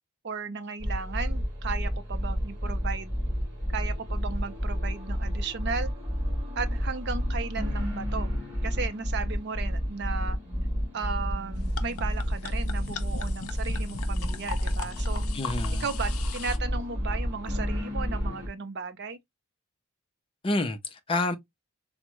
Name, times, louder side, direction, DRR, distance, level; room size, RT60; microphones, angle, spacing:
voice 1, 0.2-3.2 3.7-5.9 6.6-8.3 8.6-10.4 10.9-15.2 15.8-19.2, right 5 dB, 50° right, 0.5 m, -35 dB
sound 1, 0.8-18.5, equal, 5° right, 1.9 m, -30 dB
sound 2, 11.6-16.6, left 5 dB, 75° left, 0.5 m, -39 dB
voice 2, 15.3-15.8 20.4-21.4, left 2 dB, 25° left, 0.4 m, -28 dB
3.5 x 2.0 x 2.9 m
head